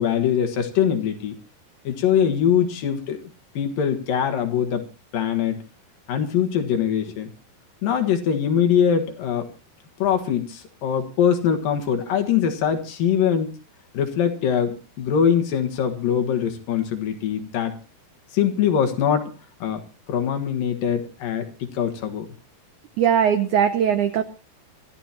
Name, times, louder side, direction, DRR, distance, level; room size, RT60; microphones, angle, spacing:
voice 1, 0.0-1.4 1.8-3.2 3.5-4.8 5.1-5.6 6.1-7.3 7.8-9.5 10.0-13.5 13.9-17.8 18.3-19.3 19.6-19.8 20.1-22.3, left 8 dB, 65° left, 6 dB, 2.9 m, -22 dB
voice 2, 23.0-24.2, right 8 dB, 85° right, 9 dB, 1.7 m, -19 dB
26.0 x 13.5 x 2.9 m, 0.32 s
omnidirectional pair, 4.6 m